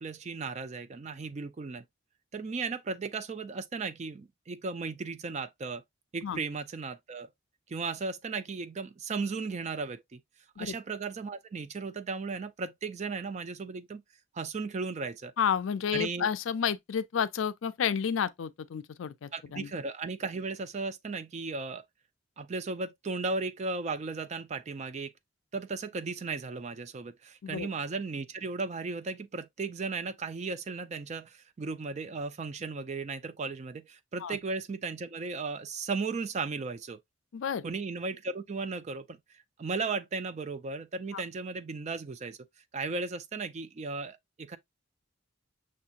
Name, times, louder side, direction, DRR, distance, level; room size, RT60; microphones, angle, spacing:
voice 1, 0.0-1.8 2.3-5.8 6.1-7.3 7.7-10.2 10.6-14.0 14.3-15.3 15.9-16.3 19.3-21.8 22.4-25.1 25.5-37.0 37.6-39.2 39.6-42.4 42.7-44.6, right 4 dB, 35° right, 0.4 m, -36 dB
voice 2, 15.4-19.7 27.4-27.7 34.2-34.4 37.3-37.6 41.1-41.2, left 7 dB, 70° left, 0.4 m, -31 dB
6.2 x 2.8 x 2.4 m
head